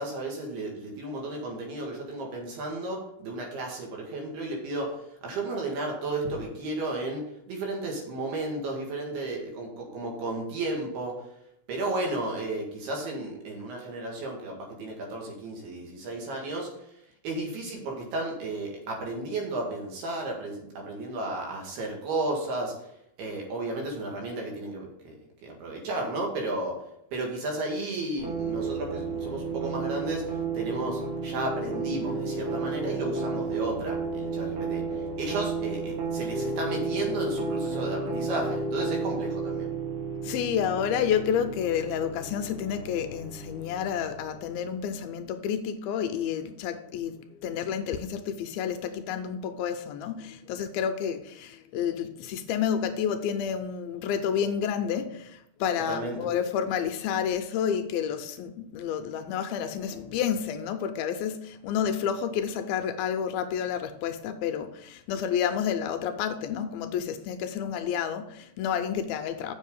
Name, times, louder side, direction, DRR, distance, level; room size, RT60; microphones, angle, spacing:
voice 1, 0.0-4.9 5.2-7.2 7.5-11.1 11.7-16.7 17.2-22.7 23.2-25.2 25.4-26.8 27.1-30.2 30.5-34.8 35.2-39.7 55.8-56.3, right 2 dB, 80° right, 0 dB, 3.9 m, -33 dB
sound 1, 28.2-44.9, right 4 dB, 60° right, 2.6 m, -32 dB
voice 2, 40.2-69.5, left 8 dB, 80° left, 8 dB, 2.3 m, -30 dB
7.5 x 6.4 x 5.3 m, 0.78 s
omnidirectional pair, 4.5 m